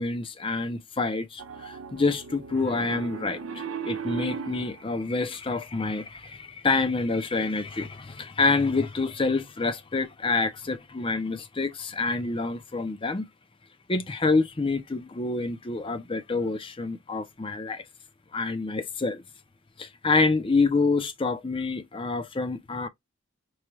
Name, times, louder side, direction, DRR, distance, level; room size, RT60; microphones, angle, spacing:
voice 1, 0.0-13.3 13.9-17.8 18.3-19.2 19.8-22.9, left 3 dB, 25° left, 0.6 m, -27 dB
Piano, 1.4-4.8, right 6 dB, 90° right, 0.6 m, -36 dB
4.7 x 2.3 x 3.0 m
head